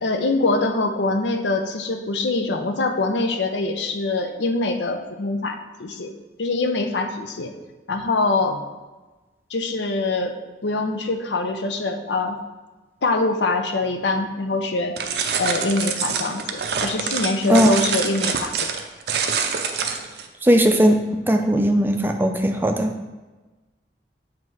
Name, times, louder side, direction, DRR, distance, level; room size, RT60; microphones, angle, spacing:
voice 1, 0.0-6.1 6.4-7.5 7.9-8.6 9.5-10.3 10.6-12.4 13.0-15.0 15.4-18.7, left 3 dB, 85° left, 6 dB, 0.6 m, -24 dB
sound 1, 15.0-20.3, right 6 dB, 65° right, 0.5 m, -25 dB
voice 2, 20.4-22.9, equal, 10° right, 4 dB, 0.4 m, -18 dB
7.5 x 2.8 x 4.6 m, 1.2 s
head